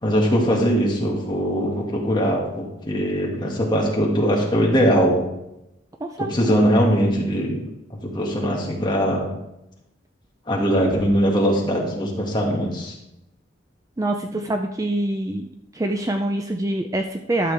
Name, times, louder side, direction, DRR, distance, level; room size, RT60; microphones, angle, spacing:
voice 1, 0.0-5.2 6.2-9.2 10.5-13.0, equal, 25° left, -2 dB, 1.9 m, -21 dB
voice 2, 6.0-6.6 14.0-15.4 15.7-17.5, right 1 dB, 20° right, 4 dB, 0.4 m, -25 dB
12.0 x 6.9 x 3.4 m, 0.87 s
head